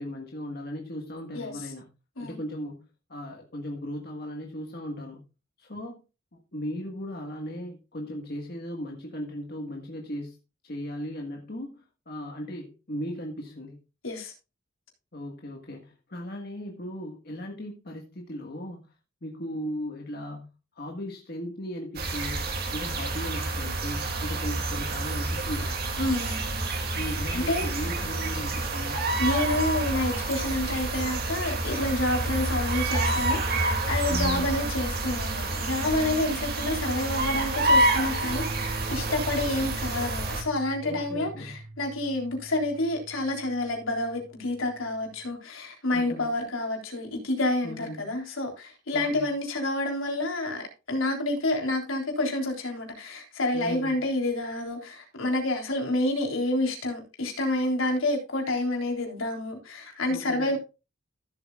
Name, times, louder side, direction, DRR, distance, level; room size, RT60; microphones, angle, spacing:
voice 1, 0.0-1.9 2.2-5.2 5.6-6.0 6.3-10.4 10.6-13.8 15.1-18.9 19.2-20.5 20.7-25.9 26.9-29.0 34.1-34.5 40.8-41.6 45.9-46.4 47.6-48.1 48.9-49.3 53.5-53.9 60.1-60.6, equal, 50° left, 1.6 m, -37 dB
sound 1, 22.0-40.4, right 2 dB, 50° right, 2.4 m, -28 dB
voice 2, 26.0-26.4 27.3-27.7 29.2-60.6, left 2 dB, 80° left, 3.6 m, -29 dB
sound 2, 38.2-45.3, right 2 dB, ahead, 1.9 m, -42 dB
15.0 x 7.9 x 2.4 m
head